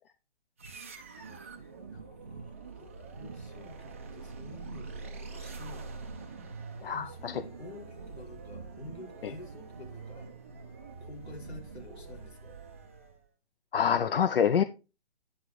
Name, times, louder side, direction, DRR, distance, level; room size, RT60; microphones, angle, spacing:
sound 1, 0.6-13.2, right 4 dB, 15° right, 0.4 m, -45 dB
voice 1, 1.6-6.4 6.9-10.3 11.0-12.6, left 1 dB, 75° left, 3.6 m, -49 dB
voice 2, 6.8-7.3 9.2-9.3 13.7-14.6, left 8 dB, 60° left, 0.6 m, -26 dB
10.0 x 3.9 x 4.6 m
hypercardioid pair, 145°, 33 cm